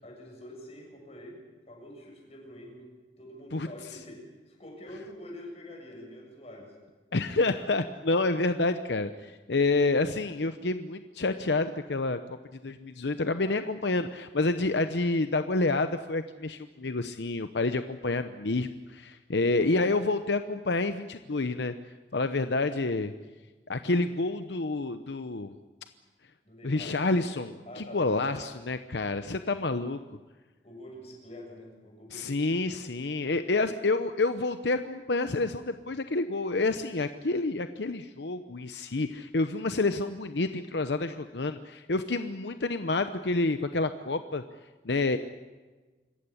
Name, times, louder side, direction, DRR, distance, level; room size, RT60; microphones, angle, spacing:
voice 1, 0.0-2.9 3.2-6.8 26.4-26.9 27.7-28.5 29.4-29.8 30.6-32.6, left 1 dB, 35° left, 0 dB, 7.2 m, -46 dB
voice 2, 7.1-12.4 12.6-21.7 22.1-23.1 23.7-25.6 26.6-30.0 32.1-44.4 44.8-45.2, left 3 dB, 75° left, 9 dB, 0.8 m, -28 dB
26.0 x 15.0 x 9.9 m, 1.3 s
head